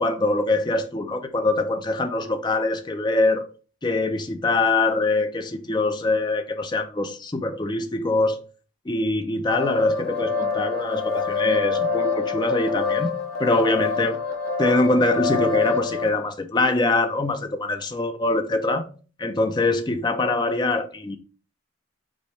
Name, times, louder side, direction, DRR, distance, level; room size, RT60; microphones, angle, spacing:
voice 1, 0.0-3.5 3.8-8.4 8.9-14.2 14.6-18.9 19.2-21.2, left 2 dB, 20° left, 0.4 m, -23 dB
sound 1, 9.5-16.1, left 5 dB, 70° left, 1.1 m, -26 dB
5.3 x 2.1 x 4.4 m
head